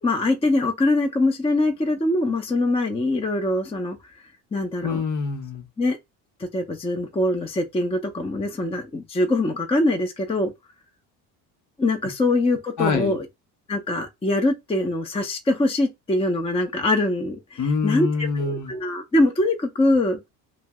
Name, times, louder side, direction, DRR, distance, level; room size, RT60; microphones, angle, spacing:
voice 1, 0.0-4.0 4.5-5.0 5.8-6.0 6.4-10.5 11.8-13.3 13.7-20.2, left 2 dB, 15° left, 0.6 m, -23 dB
voice 2, 4.8-5.6 12.8-13.2 17.6-18.7, left 5 dB, 45° left, 0.9 m, -25 dB
2.6 x 2.1 x 3.4 m
supercardioid pair, 75°, 44 cm